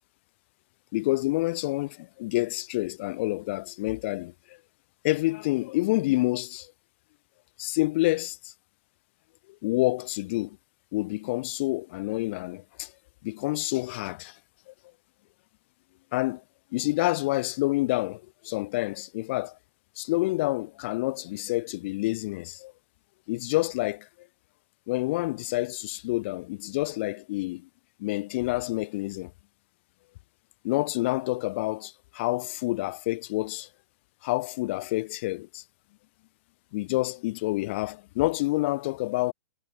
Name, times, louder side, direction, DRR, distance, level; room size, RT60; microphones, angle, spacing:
voice 1, 0.9-4.6 5.0-6.7 7.6-8.5 9.6-10.6 10.9-12.9 13.2-14.4 14.7-14.8 16.1-16.4 16.7-19.6 20.0-22.7 23.3-24.3 24.9-27.7 28.0-29.3 30.6-33.7 34.2-35.6 36.7-39.3, left 20 dB, 35° left, 0.3 m, -28 dB
hypercardioid pair, 155°, 10 cm